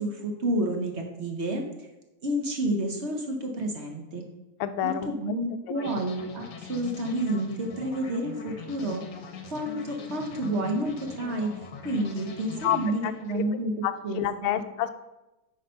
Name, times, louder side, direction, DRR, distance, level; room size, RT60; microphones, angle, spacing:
voice 1, 0.0-1.6 2.2-4.2 4.8-9.0 9.5-11.5 11.8-13.7 14.0-14.6, right 1 dB, 45° right, 2 dB, 0.9 m, -30 dB
voice 2, 4.6-5.1 5.8-5.9 12.6-13.4 13.8-14.9, left 11 dB, 85° left, 11 dB, 1.5 m, -29 dB
sound 1, 5.7-13.4, left 6 dB, 60° left, 1.3 m, -42 dB
8.5 x 4.8 x 5.6 m, 1.0 s
omnidirectional pair, 2.4 m